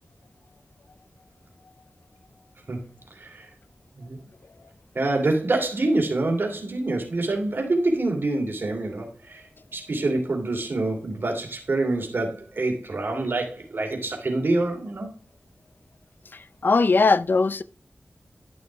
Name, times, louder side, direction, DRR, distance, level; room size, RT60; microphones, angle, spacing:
voice 1, 3.1-3.5 4.0-4.2 4.9-9.4 9.7-15.1, right 2 dB, 65° right, 2.8 m, -26 dB
voice 2, 16.6-17.6, left 4 dB, 60° left, 0.5 m, -19 dB
11.5 x 6.4 x 3.5 m
wide cardioid pair, 75°, 4 cm